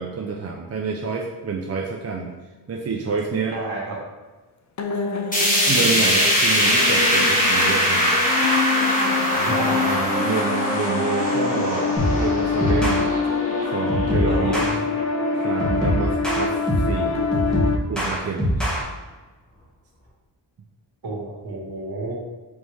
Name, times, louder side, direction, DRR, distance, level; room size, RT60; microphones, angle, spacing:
voice 1, 0.0-2.3 2.7-3.6 5.7-8.1 9.3-13.1 13.7-14.6 15.4-16.6 16.9-17.3 17.9-18.8, right 5 dB, 35° right, 1 dB, 0.5 m, -28 dB
sound 1, 1.7-1.8 4.8-17.8, left 5 dB, 40° left, 0.5 m, -25 dB
voice 2, 3.5-4.0 9.5-10.0 14.3-14.8 21.0-22.1, right 2 dB, 55° right, -3 dB, 1.4 m, -30 dB
sound 2, 5.3-15.5 15.9-16.0 16.4-16.5 17.3-17.4, equal, 20° left, 1.4 m, -22 dB
sound 3, 12.0-12.3 12.6-13.0 13.9-14.8 15.6-17.0 17.3-18.8, equal, ahead, 1.3 m, -23 dB
4.1 x 3.4 x 3.2 m, 1.2 s
wide cardioid pair, 80°, 43 cm